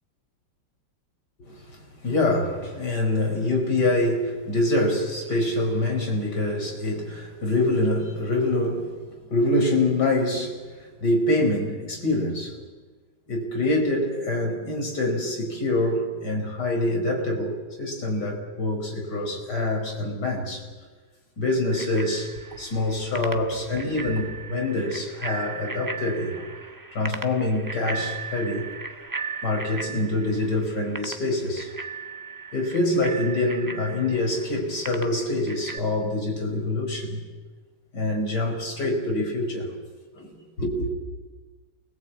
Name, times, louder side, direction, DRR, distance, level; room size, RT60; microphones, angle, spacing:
voice 1, 1.4-9.0 9.3-12.6 13.3-20.7 21.4-26.4 26.9-28.7 29.4-31.7 32.5-37.2 37.9-39.7 40.2-40.3 40.6-40.9, left 2 dB, 50° left, 2 dB, 5.4 m, -25 dB
Bicycle bell, 21.7-35.8, right 4 dB, 15° right, 0.7 m, -37 dB
28.0 x 21.5 x 8.4 m, 1.3 s
omnidirectional pair, 2.3 m